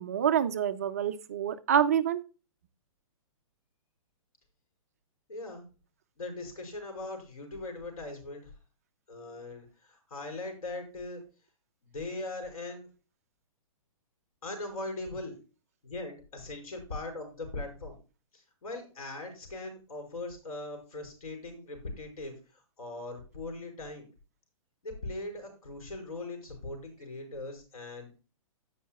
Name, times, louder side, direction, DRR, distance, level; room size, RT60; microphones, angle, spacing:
voice 1, 0.0-2.2, right 9 dB, 25° right, 10 dB, 0.4 m, -27 dB
voice 2, 5.3-5.6 6.2-8.5 9.1-11.2 11.8-12.9 14.4-15.4 15.8-18.0 18.3-24.1 24.8-28.2, left 2 dB, 85° left, 5 dB, 5.1 m, -40 dB
16.5 x 5.5 x 2.3 m, 0.32 s
hypercardioid pair, 175°, 18 cm